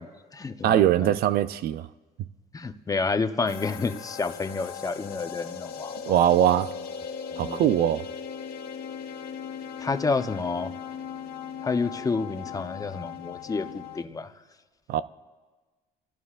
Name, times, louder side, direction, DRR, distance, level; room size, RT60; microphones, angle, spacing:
voice 1, 0.0-1.1 2.5-6.1 7.3-7.6 9.8-10.7 11.6-14.3, left 4 dB, 20° left, 0.8 m, -30 dB
voice 2, 0.6-1.9 6.1-6.7 7.4-8.1 14.9-15.0, right 11 dB, 70° right, 0.5 m, -21 dB
sound 1, 3.5-14.0, left 7 dB, 70° left, 1.1 m, -38 dB
29.0 x 16.5 x 2.5 m
cardioid pair, 110°, 17 cm